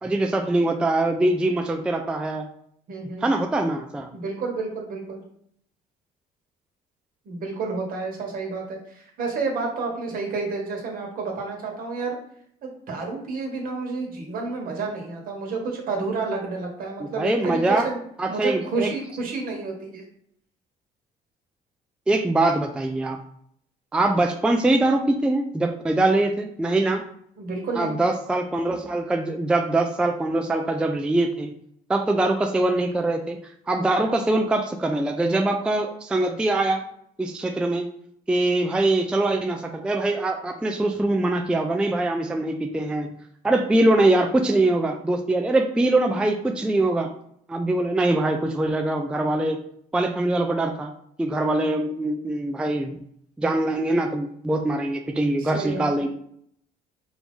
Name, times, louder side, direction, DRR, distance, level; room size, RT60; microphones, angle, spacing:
voice 1, 0.0-2.5 3.2-4.1 17.0-17.9 18.2-18.9 22.1-23.2 23.9-27.0 27.8-31.5 31.9-33.4 33.7-36.8 37.2-37.9 38.3-43.1 43.4-47.1 47.5-49.6 49.9-50.9 51.2-53.0 53.4-56.1, right 2 dB, 5° right, 4 dB, 0.3 m, -23 dB
voice 2, 2.9-3.3 4.1-5.2 7.2-12.2 12.6-18.0 18.3-20.0 27.4-28.0 33.7-34.0 55.4-56.1, right 4 dB, 60° right, 1 dB, 1.3 m, -30 dB
4.6 x 2.6 x 3.5 m, 0.68 s
cardioid pair, 110°, 17 cm